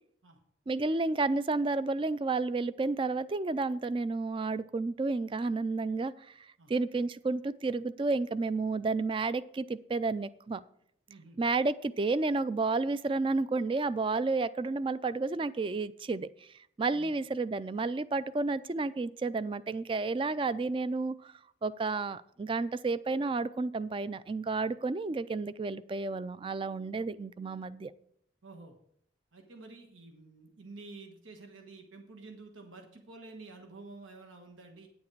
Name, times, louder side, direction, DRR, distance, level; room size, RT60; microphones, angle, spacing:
voice 1, 0.7-10.6 11.4-16.5 16.8-21.3 21.6-27.9, right 3 dB, 25° right, 16 dB, 0.3 m, -31 dB
voice 2, 11.1-11.4 16.9-17.1 28.4-28.8 29.3-34.9, right 3 dB, 90° right, 4 dB, 1.3 m, -50 dB
9.3 x 7.2 x 4.6 m, 0.68 s
head